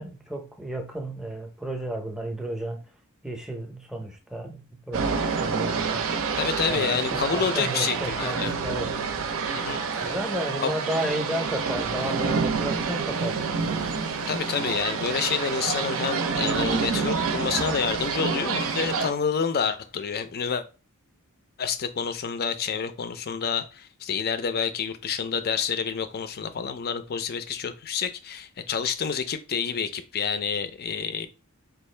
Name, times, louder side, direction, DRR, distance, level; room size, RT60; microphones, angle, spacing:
voice 1, 0.0-2.8 3.2-6.1 6.7-8.9 10.0-13.4, right 1 dB, ahead, 0.6 m, -33 dB
sound 1, 4.9-19.1, right 5 dB, 65° right, 0.5 m, -28 dB
voice 2, 6.4-8.5 9.5-10.1 10.6-10.7 14.3-20.6 21.6-31.3, left 6 dB, 45° left, 0.5 m, -28 dB
sound 2, 7.3-10.7 11.6-16.4, left 5 dB, 90° left, 0.6 m, -47 dB
4.5 x 2.4 x 3.2 m
head